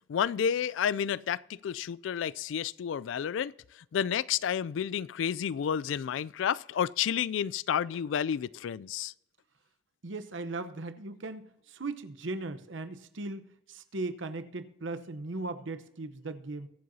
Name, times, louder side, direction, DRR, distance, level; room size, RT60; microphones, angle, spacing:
voice 1, 0.1-9.1, left 8 dB, 85° left, 0.3 m, -31 dB
voice 2, 10.0-16.7, right 2 dB, 85° right, 0.9 m, -38 dB
23.0 x 7.6 x 2.7 m
head